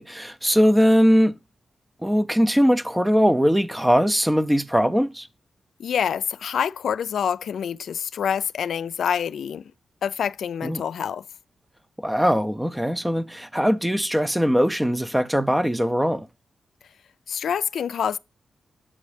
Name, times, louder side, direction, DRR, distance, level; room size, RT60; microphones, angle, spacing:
voice 1, 0.0-1.3 2.0-5.3 10.6-10.8 12.0-16.3, equal, 5° right, 0.4 m, -20 dB
voice 2, 5.8-9.6 10.0-11.2 17.3-18.2, left 8 dB, 85° left, 0.3 m, -26 dB
8.5 x 6.4 x 3.2 m
wide cardioid pair, 130°, 0 cm